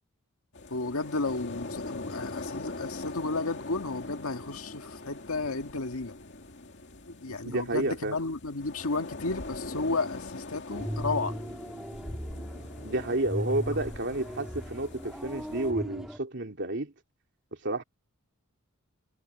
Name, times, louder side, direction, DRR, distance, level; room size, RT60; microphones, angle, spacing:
sound 1, 0.5-15.7, left 2 dB, 55° left, 2.3 m, -42 dB
voice 1, 0.7-6.1 7.1-11.4, left 3 dB, 85° left, 1.8 m, -33 dB
voice 2, 7.3-8.2 12.8-16.9 17.6-17.8, right 2 dB, 55° right, 2.9 m, -31 dB
sound 2, 10.7-16.2, equal, 5° right, 2.9 m, -37 dB
head